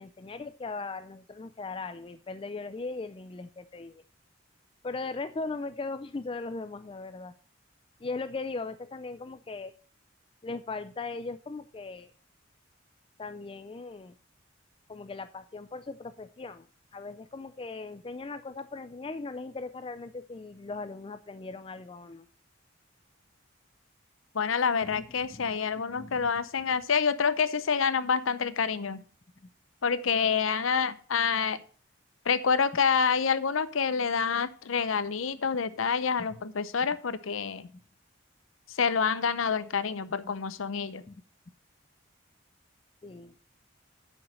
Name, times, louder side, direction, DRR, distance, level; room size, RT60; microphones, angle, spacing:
voice 1, 0.0-4.0 4.8-7.3 8.0-9.7 10.4-12.1 13.2-14.1 14.9-16.7 16.9-22.3 24.8-25.0 25.3-26.4 29.4-29.5 36.2-36.4 40.2-40.3 41.1-41.2 43.0-43.3, left 3 dB, 25° left, 12 dB, 0.4 m, -39 dB
voice 2, 24.3-29.0 29.8-31.6 32.3-37.7 38.8-41.0, left 6 dB, 80° left, 15 dB, 0.7 m, -27 dB
8.7 x 6.3 x 6.2 m, 0.41 s
head